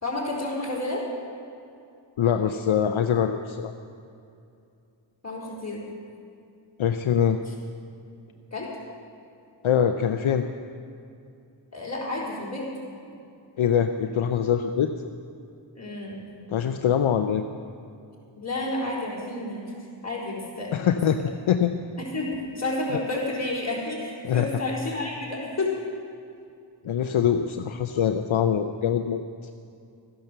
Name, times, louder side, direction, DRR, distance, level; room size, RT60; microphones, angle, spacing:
voice 1, 0.0-1.0 5.2-5.8 8.5-8.7 11.7-12.7 15.8-16.2 18.4-19.7 20.0-20.8 22.0-25.7, left 2 dB, 30° left, -5 dB, 4.1 m, -30 dB
voice 2, 2.2-3.7 6.8-7.4 9.6-10.4 13.6-14.9 16.5-17.4 20.7-21.2 21.5-21.7 24.2-24.5 26.8-29.2, left 8 dB, 75° left, 7 dB, 0.7 m, -23 dB
14.0 x 10.5 x 6.8 m, 2.5 s
wide cardioid pair, 85°, 49 cm